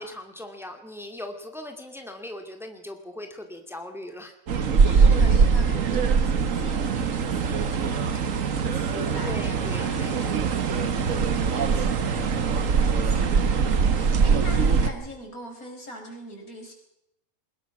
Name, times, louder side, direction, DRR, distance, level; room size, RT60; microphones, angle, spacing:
voice 1, 0.0-4.3 9.1-10.3, left 1 dB, ahead, 5 dB, 2.3 m, -39 dB
sound 1, 4.5-14.9, right 5 dB, 65° right, 1.6 m, -22 dB
voice 2, 4.8-10.4 10.9-16.7, equal, 85° left, 2 dB, 5.4 m, -40 dB
22.0 x 20.0 x 6.0 m, 0.81 s
omnidirectional pair, 1.5 m